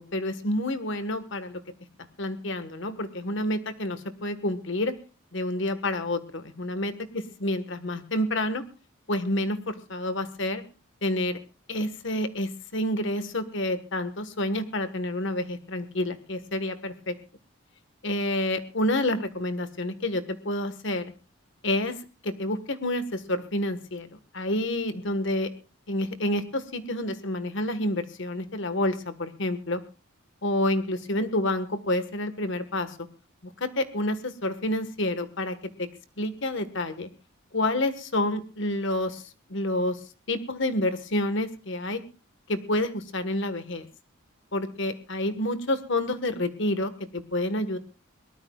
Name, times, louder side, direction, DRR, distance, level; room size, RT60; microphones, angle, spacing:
voice 1, 0.0-1.6 2.2-4.9 5.3-8.6 9.1-10.6 11.0-11.4 11.7-17.1 18.0-21.0 21.6-22.0 22.2-25.5 25.9-29.8 30.4-33.1 33.4-35.9 36.2-37.1 37.5-39.2 39.5-40.0 40.3-42.0 42.5-43.9 44.5-47.8, left 1 dB, 60° left, 10 dB, 1.5 m, -29 dB
22.5 x 18.5 x 2.4 m, 0.34 s
head